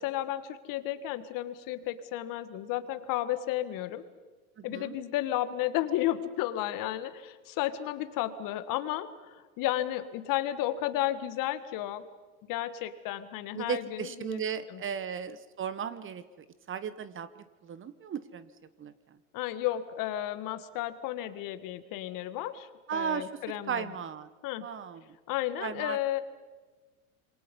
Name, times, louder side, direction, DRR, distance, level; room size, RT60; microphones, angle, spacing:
voice 1, 0.0-4.0 4.6-12.0 12.5-14.4 14.7-14.8 19.3-23.8 24.4-24.7 25.3-26.2, left 13 dB, 50° left, 12 dB, 1.8 m, -33 dB
voice 2, 4.6-4.9 13.5-16.2 16.7-18.5 18.8-19.2 22.9-23.3 23.7-24.3 24.6-25.2 25.6-26.0, right 7 dB, 30° right, 14 dB, 1.2 m, -36 dB
27.0 x 24.5 x 5.4 m, 1.3 s
hypercardioid pair, 95°, 44 cm